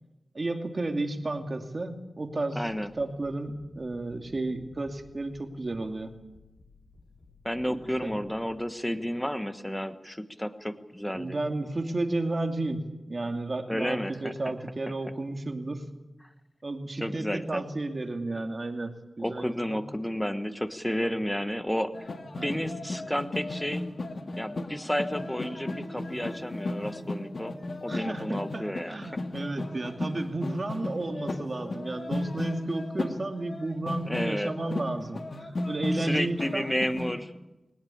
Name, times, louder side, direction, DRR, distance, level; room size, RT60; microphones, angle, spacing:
voice 1, 0.3-2.6 3.0-6.2 8.0-8.2 11.1-15.8 16.6-19.8 21.0-21.1 22.3-22.6 27.9-36.6, right 2 dB, 45° right, 4 dB, 2.5 m, -32 dB
voice 2, 2.5-2.9 7.4-11.4 13.7-14.5 17.0-17.6 19.2-22.1 22.4-23.8 24.4-27.5 27.8-29.0 29.7-29.8 34.0-34.5 35.9-37.3, equal, 5° left, 9 dB, 1.4 m, -31 dB
sound 1, 2.6-8.4, left 3 dB, 85° left, 6.5 m, -57 dB
sound 2, 21.9-37.2, left 2 dB, 60° left, 2.0 m, -35 dB
21.0 x 19.0 x 8.7 m, 1.0 s
wide cardioid pair, 80°, 0 cm